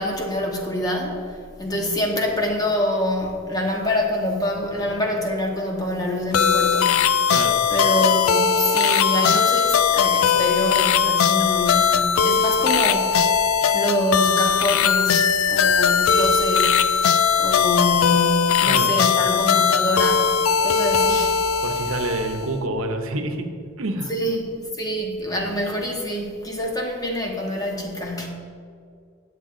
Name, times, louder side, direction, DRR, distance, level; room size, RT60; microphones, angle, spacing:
voice 1, 0.0-7.1 7.7-13.3 13.7-16.8 17.4-20.3 20.6-21.4 24.1-28.3, left 1 dB, 20° left, 0 dB, 1.1 m, -25 dB
sound 1, 6.3-22.5, left 7 dB, 80° left, 0.4 m, -19 dB
voice 2, 21.6-23.5 23.8-24.1, right 2 dB, 85° right, 5 dB, 0.9 m, -27 dB
9.0 x 8.4 x 3.8 m, 2.2 s
head